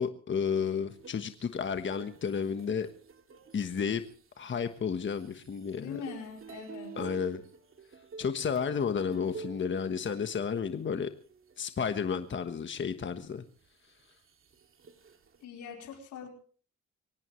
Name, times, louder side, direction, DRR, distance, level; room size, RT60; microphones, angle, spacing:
voice 1, 0.0-2.9 3.5-4.0 4.4-6.0 7.0-7.4 8.2-11.1 11.6-13.4, left 6 dB, 40° left, 8 dB, 1.3 m, -32 dB
sound 1, 0.9-12.2 12.7-12.8 13.3-15.4, right 4 dB, 45° right, 2.4 m, -50 dB
voice 2, 5.7-7.0 15.4-16.3, left 6 dB, 75° left, 2 dB, 4.6 m, -42 dB
23.5 x 18.0 x 3.2 m, 0.42 s
cardioid pair, 90°, 30 cm